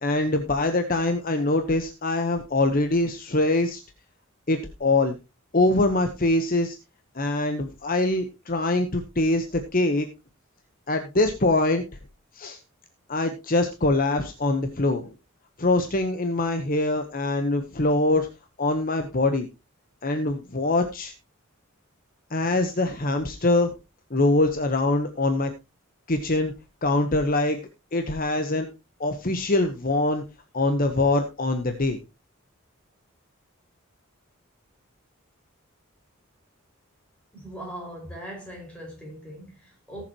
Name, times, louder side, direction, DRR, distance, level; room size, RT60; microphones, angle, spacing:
voice 1, 0.0-3.8 4.5-5.2 5.5-6.8 7.1-10.1 10.9-11.8 12.3-12.6 13.1-15.1 15.6-18.3 18.6-19.5 20.0-21.1 22.3-23.7 24.1-25.5 26.1-26.5 26.8-27.6 27.9-28.7 29.0-30.2 30.5-32.0, left 2 dB, 40° left, 1.0 m, -23 dB
voice 2, 37.3-40.1, equal, 5° left, 5.0 m, -40 dB
18.5 x 7.2 x 3.0 m
head